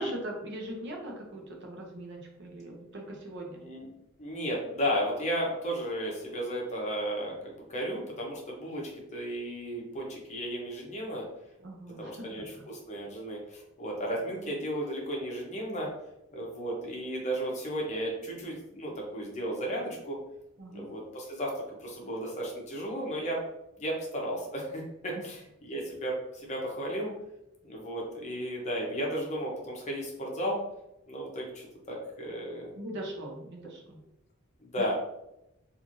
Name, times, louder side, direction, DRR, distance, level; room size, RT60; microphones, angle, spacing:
voice 1, 0.0-3.6 11.6-12.1 12.4-12.7 20.6-20.9 32.8-34.0, right 1 dB, 55° right, 1 dB, 0.6 m, -40 dB
voice 2, 4.2-11.2 12.0-15.9 16.3-20.2 20.7-23.4 23.8-27.1 27.6-30.6 31.1-32.7 34.6-34.9, equal, 35° left, -1 dB, 0.7 m, -34 dB
3.0 x 2.5 x 2.5 m, 0.86 s
head